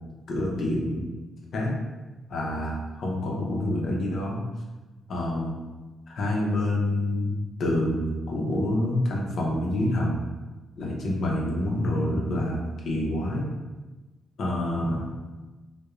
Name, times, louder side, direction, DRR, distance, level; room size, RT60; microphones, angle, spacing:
voice 1, 0.3-1.0 1.5-1.8 2.3-4.4 5.1-5.6 6.1-10.2 10.8-12.6 12.8-13.4 14.4-15.1, left 1 dB, 55° left, -2 dB, 0.6 m, -27 dB
2.3 x 2.1 x 2.9 m, 1.2 s
cardioid pair, 155°, 0 cm